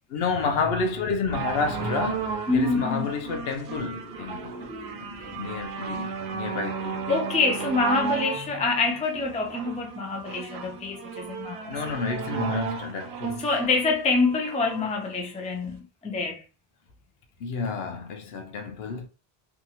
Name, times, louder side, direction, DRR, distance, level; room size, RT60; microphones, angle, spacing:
voice 1, 0.1-4.6 4.9-7.2 11.7-13.5 17.4-19.1, left 4 dB, 75° left, 0.8 m, -30 dB
sound 1, 1.3-14.9 15.7-15.8, right 6 dB, 85° right, 0.8 m, -34 dB
voice 2, 2.5-3.1 4.3-5.3 7.1-11.7 13.4-16.4, left 3 dB, 10° left, 0.3 m, -26 dB
2.7 x 2.4 x 2.7 m
omnidirectional pair, 1.1 m